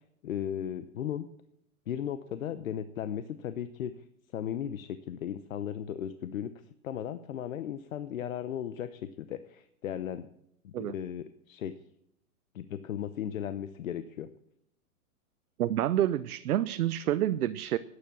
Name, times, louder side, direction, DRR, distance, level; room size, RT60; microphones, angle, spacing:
voice 1, 0.2-1.3 1.9-4.0 4.3-6.5 6.8-10.3 10.6-11.8 12.5-14.3, left 9 dB, 65° left, 12 dB, 0.8 m, -36 dB
voice 2, 15.6-17.8, right 12 dB, 80° right, 12 dB, 0.7 m, -28 dB
12.5 x 9.7 x 6.2 m, 0.77 s
hypercardioid pair, 175°, 44 cm